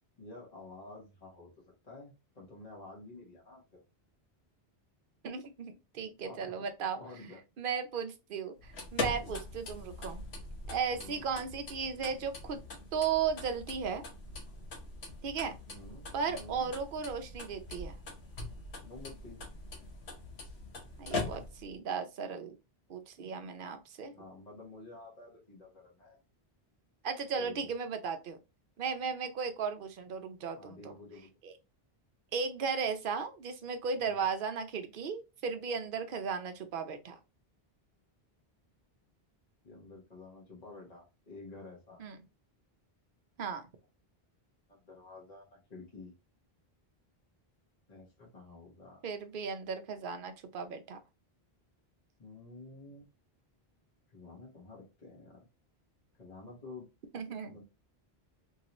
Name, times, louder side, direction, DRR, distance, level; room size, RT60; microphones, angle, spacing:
voice 1, 0.2-1.5 1.8-3.8 6.2-6.7 7.0-7.4 9.1-9.4 10.9-11.3 15.7-16.7 18.8-19.4 24.1-26.2 27.3-27.7 30.5-31.3 34.0-34.2 39.6-42.0 44.7-46.1 47.9-49.0 52.2-53.0 54.1-55.4 56.2-56.9 57.4-57.6, left 2 dB, 40° left, 1.2 m, -50 dB
voice 2, 5.2-7.0 7.6-10.2 10.7-12.6 12.9-14.0 15.2-15.5 16.1-18.0 21.0-22.5 22.9-24.1 27.0-28.4 28.8-30.9 31.4-31.5 32.3-37.2 42.0-42.2 43.4-43.7 49.0-51.0 57.1-57.6, right 6 dB, 60° right, 0.7 m, -36 dB
sound 1, 8.6-21.8, left 2 dB, 85° left, 1.2 m, -42 dB
3.1 x 2.7 x 2.9 m
omnidirectional pair, 1.1 m